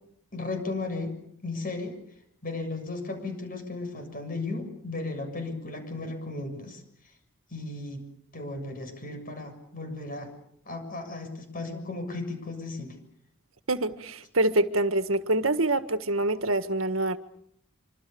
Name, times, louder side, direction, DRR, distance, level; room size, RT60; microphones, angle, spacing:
voice 1, 0.3-2.0 2.4-6.8 7.5-10.3 10.7-13.0, left 3 dB, 45° left, 7.1 m, -35 dB
voice 2, 13.7-17.2, right 2 dB, 75° right, 1.7 m, -25 dB
26.5 x 26.0 x 7.0 m
head